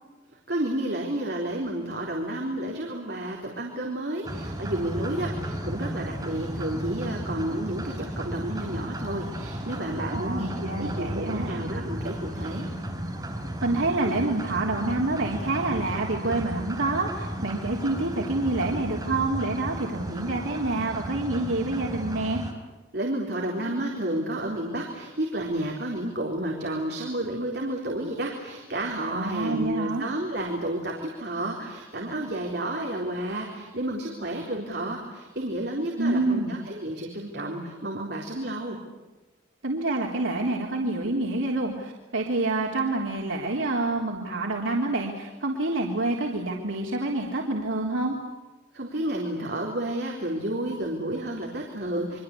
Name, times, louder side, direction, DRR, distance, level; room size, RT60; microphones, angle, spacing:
voice 1, 0.5-10.5 10.8-12.7 22.9-38.8 48.7-52.2, right 1 dB, 55° right, 0 dB, 4.0 m, -31 dB
sound 1, 4.2-22.5, equal, 20° right, 4.3 m, -34 dB
voice 2, 10.1-11.5 13.6-22.4 29.1-30.1 36.0-36.6 39.6-48.2, right 2 dB, 90° right, -2 dB, 3.5 m, -27 dB
29.0 x 24.0 x 8.5 m, 1.2 s
head